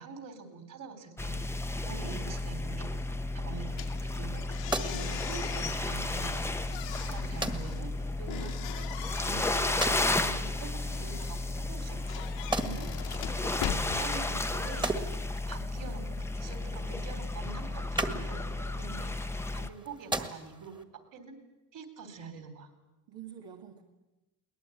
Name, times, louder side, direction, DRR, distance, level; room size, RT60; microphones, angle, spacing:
voice 1, 0.0-1.4 1.8-2.9 3.3-4.4 4.8-7.9 8.2-8.9 9.2-11.4 11.7-12.9 13.9-19.1 19.5-20.8 21.1-21.4 21.7-22.7, right 5 dB, 50° right, 9 dB, 3.7 m, -45 dB
sound 1, 1.2-19.7, left 2 dB, 5° left, 0.9 m, -33 dB
sound 2, 3.7-14.8, left 11 dB, 85° left, 2.2 m, -42 dB
sound 3, 4.2-20.8, right 2 dB, 10° right, 1.7 m, -40 dB
voice 2, 18.6-18.9 23.1-23.8, right 9 dB, 70° right, 2 dB, 2.1 m, -48 dB
22.0 x 19.0 x 9.2 m, 1.0 s
cardioid pair, 130°, 42 cm